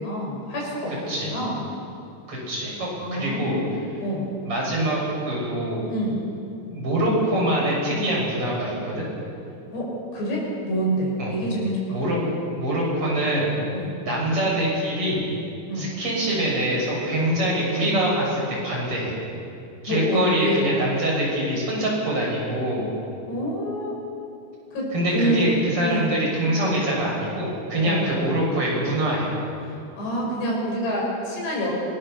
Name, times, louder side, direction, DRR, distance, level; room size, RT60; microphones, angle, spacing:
voice 1, 0.0-0.9 1.2-1.6 3.0-4.3 5.9-6.2 9.7-12.0 13.7-14.0 15.7-15.9 19.9-20.6 23.3-24.0 24.7-25.5 25.9-26.1 27.8-28.1 29.6-31.7, equal, 80° left, -3 dB, 7.9 m, -27 dB
voice 2, 2.3-3.6 4.4-5.8 6.7-9.1 11.2-11.3 11.9-12.2 12.6-13.5 14.0-15.2 15.8-19.1 19.8-22.9 24.9-29.3, right 1 dB, 30° right, -4 dB, 7.3 m, -24 dB
26.0 x 19.0 x 6.9 m, 2.6 s
omnidirectional pair, 4.8 m